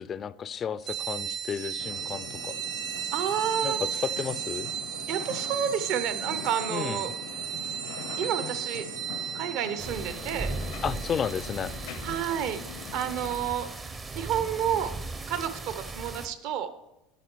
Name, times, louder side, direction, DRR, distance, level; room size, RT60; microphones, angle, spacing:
voice 1, 0.0-2.5 3.6-4.7 6.7-7.1 10.8-11.7, left 7 dB, 30° left, 16 dB, 0.4 m, -32 dB
sound 1, 0.9-13.0, right 10 dB, 75° right, 3.0 m, -36 dB
sound 2, 1.8-13.4, left 9 dB, 70° left, 0.6 m, -43 dB
voice 2, 3.1-3.8 5.1-7.1 8.2-8.9 9.3-10.5 12.0-12.6 12.9-13.7 14.1-14.9 15.3-16.7, right 9 dB, 60° right, 11 dB, 0.8 m, -30 dB
sound 3, 9.8-16.3, right 3 dB, 20° right, 0.6 m, -37 dB
9.2 x 6.6 x 4.5 m, 0.93 s
supercardioid pair, 140°, 0 cm